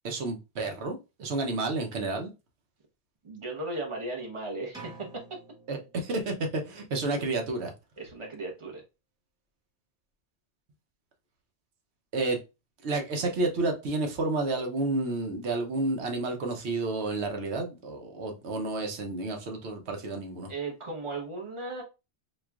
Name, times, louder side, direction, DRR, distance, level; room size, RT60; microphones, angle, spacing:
voice 1, 0.0-2.3 5.7-7.7 12.1-12.4 12.8-20.5, right 2 dB, 70° right, 1.0 m, -30 dB
voice 2, 3.2-5.4 8.0-8.8 20.5-21.8, right 2 dB, 30° right, 0.9 m, -36 dB
sound 1, 4.7-6.6, right 3 dB, 5° right, 0.5 m, -49 dB
4.2 x 2.3 x 2.3 m
omnidirectional pair, 1.1 m